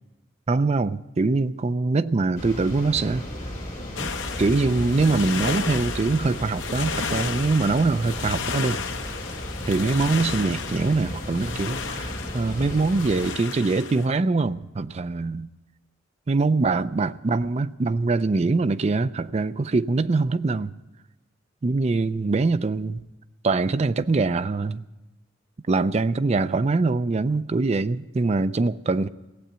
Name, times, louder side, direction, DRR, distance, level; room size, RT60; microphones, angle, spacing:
voice 1, 0.5-3.2 4.0-4.1 4.4-8.8 9.7-15.5 16.3-20.7 21.6-23.0 23.4-24.8 25.7-29.1, right 3 dB, 35° right, 0.4 m, -23 dB
sound 1, 2.4-13.3, equal, 35° left, 4.6 m, -35 dB
sound 2, 4.0-14.1, left 6 dB, 75° left, 0.9 m, -33 dB
16.5 x 7.9 x 8.7 m
head